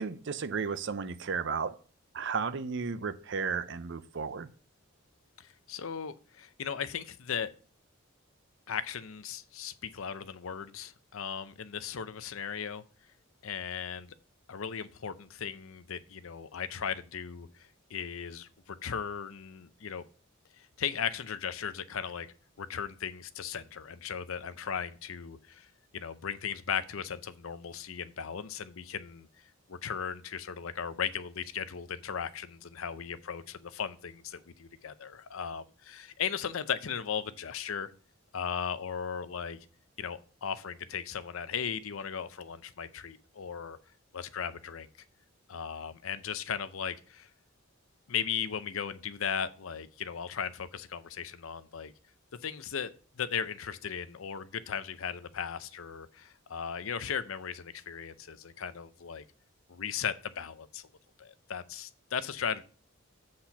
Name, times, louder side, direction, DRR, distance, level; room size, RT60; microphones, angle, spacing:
voice 1, 0.0-1.8 2.1-4.5, right 5 dB, 55° right, 0.6 m, -33 dB
voice 2, 5.4-7.5 8.7-12.8 13.4-14.1 14.5-20.0 20.6-22.3 22.6-25.7 25.9-29.3 29.7-37.9 38.3-39.7 40.0-43.8 44.1-44.9 45.5-47.3 48.1-51.9 52.4-59.2 59.7-60.9 61.2-62.6, left 7 dB, 75° left, 0.6 m, -37 dB
7.7 x 4.3 x 5.8 m
head